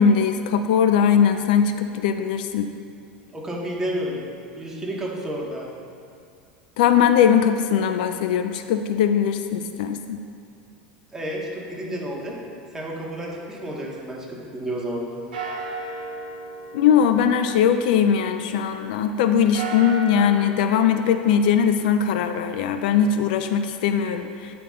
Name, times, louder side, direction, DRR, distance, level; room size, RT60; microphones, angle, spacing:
voice 1, 0.0-2.7 6.8-10.2 16.7-24.5, left 7 dB, 70° left, 8 dB, 0.4 m, -20 dB
voice 2, 3.3-4.3 4.5-5.7 11.1-12.4 12.7-15.1, equal, 10° right, -4 dB, 1.9 m, -31 dB
sound 1, 13.2-14.9 15.3-18.9 19.3-20.6, right 3 dB, 85° right, 1.4 m, -36 dB
9.9 x 5.7 x 3.8 m, 2.4 s
hypercardioid pair, 95°, 5 cm